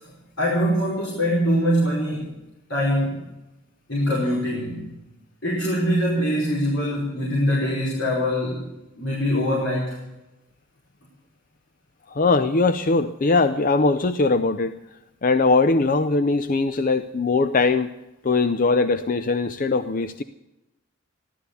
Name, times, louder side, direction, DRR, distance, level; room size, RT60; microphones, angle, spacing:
voice 1, 0.4-2.4 2.7-3.2 3.9-4.9 5.4-8.6 9.0-10.0, equal, 65° left, -4 dB, 5.1 m, -23 dB
voice 2, 12.1-17.9 18.2-20.2, left 3 dB, 45° left, 10 dB, 0.5 m, -21 dB
16.0 x 12.5 x 6.9 m, 0.97 s
head